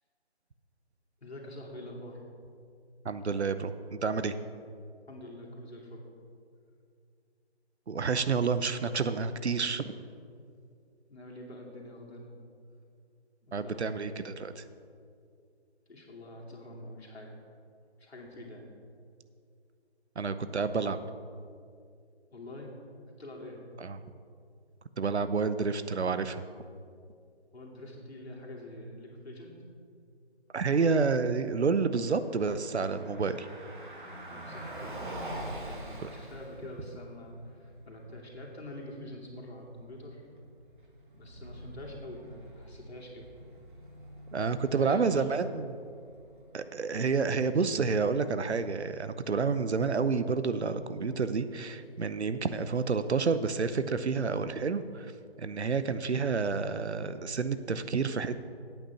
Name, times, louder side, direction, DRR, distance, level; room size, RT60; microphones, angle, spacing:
voice 1, 1.2-2.2 5.1-6.0 11.1-12.3 13.4-14.0 15.9-17.3 18.0-18.7 22.3-22.7 23.2-23.6 27.5-29.5 34.3-34.9 35.3-40.2 41.1-43.2 44.8-45.5, left 1 dB, 70° left, -2 dB, 2.6 m, -45 dB
voice 2, 3.0-4.3 7.9-10.0 13.5-14.6 20.2-21.0 23.8-24.0 25.0-26.4 30.5-33.5 36.0-36.1 44.3-45.6 46.5-55.1 55.4-58.4, right 5 dB, 75° right, 12 dB, 0.8 m, -29 dB
Car passing by, 32.2-48.3, right 1 dB, 45° right, 1.7 m, -46 dB
8.8 x 8.8 x 5.8 m, 2.4 s
figure-of-eight pair, 165°, 33 cm